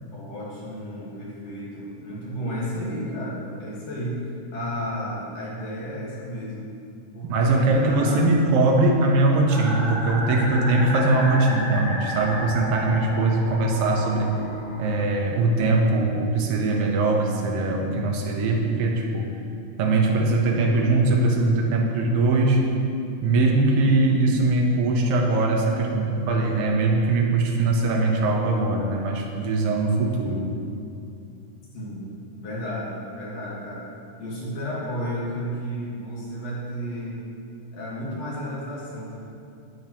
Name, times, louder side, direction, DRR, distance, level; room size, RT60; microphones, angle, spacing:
voice 1, 0.1-4.3 4.5-6.7 7.1-8.3 23.7-24.6 31.7-32.1 32.4-33.8 34.2-37.2 37.7-39.2, equal, 55° left, -6 dB, 2.6 m, -33 dB
voice 2, 7.3-14.4 14.8-19.3 19.8-22.7 23.2-30.5, right 2 dB, 65° right, 0 dB, 1.5 m, -21 dB
sound 1, 9.5-15.0, equal, 85° left, 4.2 m, -32 dB
10.5 x 8.5 x 3.0 m, 2.5 s
omnidirectional pair, 3.7 m